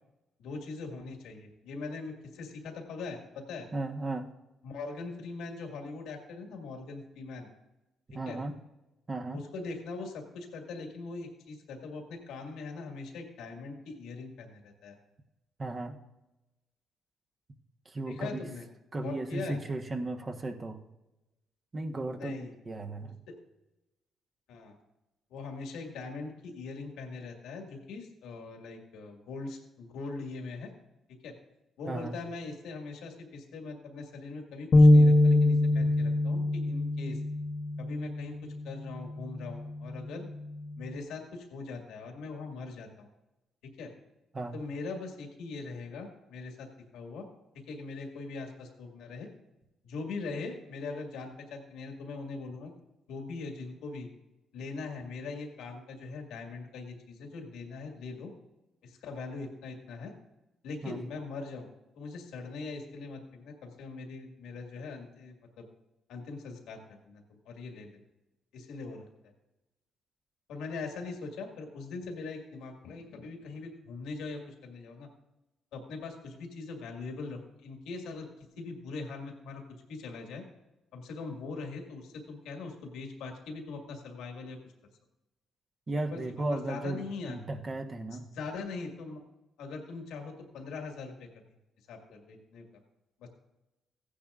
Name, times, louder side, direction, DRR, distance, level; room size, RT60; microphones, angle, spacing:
voice 1, 0.4-3.7 4.6-7.5 8.3-8.4 9.3-15.0 18.0-18.6 19.0-19.6 22.2-22.5 23.3-23.4 24.5-24.8 25.3-30.7 31.2-31.3 31.8-37.2 37.8-38.3 38.6-40.3 40.8-43.1 43.8-43.9 44.5-46.7 46.9-47.3 47.7-49.3 49.8-52.7 53.1-54.1 54.5-58.3 58.8-60.1 60.6-61.7 62.0-65.6 66.1-68.0 68.5-69.1 70.5-75.1 75.7-78.3 78.6-79.6 79.9-80.4 80.9-84.6 85.9-86.2 86.5-87.4 88.3-89.2 89.6-91.3 91.9-92.6 93.2-93.3, left 3 dB, 85° left, 2 dB, 1.9 m, -41 dB
voice 2, 3.7-4.3 8.1-8.5 9.1-9.4 15.6-16.0 17.8-18.5 18.9-20.8 21.7-23.2 31.9-32.2 44.3-44.6 60.8-61.0 85.9-88.3, right 2 dB, 35° right, 4 dB, 1.2 m, -35 dB
sound 1, 34.7-41.0, left 1 dB, 45° left, 1.0 m, -24 dB
15.5 x 10.0 x 2.5 m, 0.99 s
cardioid pair, 90°, 0 cm